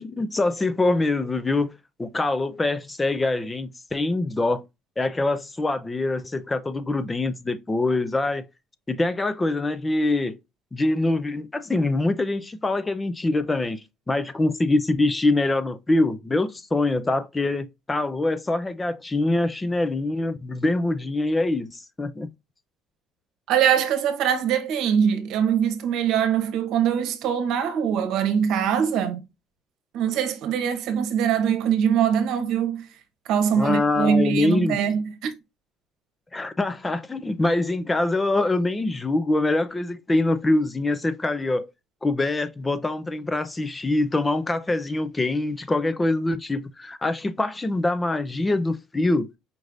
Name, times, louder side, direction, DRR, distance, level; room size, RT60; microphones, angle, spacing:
voice 1, 0.0-4.7 5.0-8.5 8.9-10.4 10.7-22.3 33.6-34.8 36.3-41.7 42.0-49.3, left 2 dB, 20° left, 0.6 m, -24 dB
voice 2, 23.5-29.3 29.9-32.9 33.2-35.3, right 8 dB, 70° right, 1.0 m, -23 dB
5.2 x 3.2 x 2.5 m
supercardioid pair, 80°, 0 cm